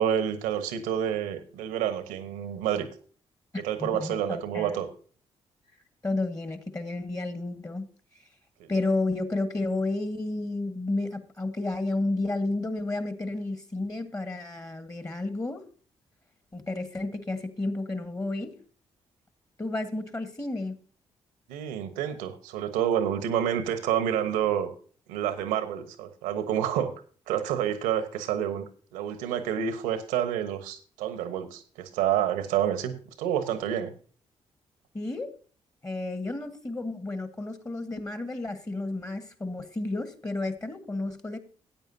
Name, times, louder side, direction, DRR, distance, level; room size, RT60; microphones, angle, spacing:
voice 1, 0.0-2.9 3.6-4.9 8.6-8.7 21.5-24.7 25.1-26.9 27.3-33.9, right 9 dB, 80° right, 10 dB, 1.1 m, -28 dB
voice 2, 3.5-4.7 6.0-7.9 8.7-15.6 16.5-18.6 19.6-20.8 34.9-35.3 35.8-41.4, left 2 dB, 25° left, 10 dB, 1.4 m, -31 dB
14.5 x 8.9 x 2.7 m, 0.41 s
hypercardioid pair, 40°, 14 cm